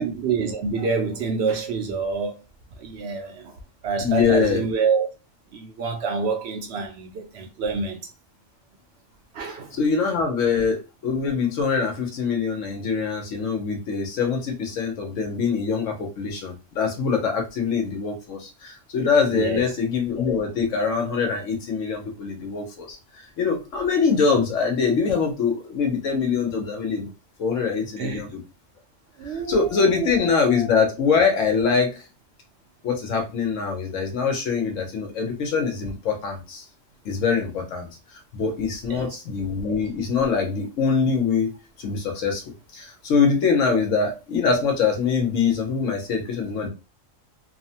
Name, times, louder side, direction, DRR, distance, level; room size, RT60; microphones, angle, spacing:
voice 1, 0.0-2.4 2.8-3.6 3.8-5.1 5.5-8.0 9.3-9.8 19.3-19.6 28.0-28.2 29.2-30.1 38.9-39.1, right 5 dB, 65° right, 0.8 m, -27 dB
voice 2, 4.0-4.7 9.8-23.0 23.4-27.1 27.4-28.4 29.2-32.0 32.8-36.6 37.0-37.9 38.3-41.5 41.8-42.4 42.7-46.7, left 5 dB, 80° left, 1.1 m, -23 dB
3.0 x 2.1 x 2.7 m
omnidirectional pair, 1.3 m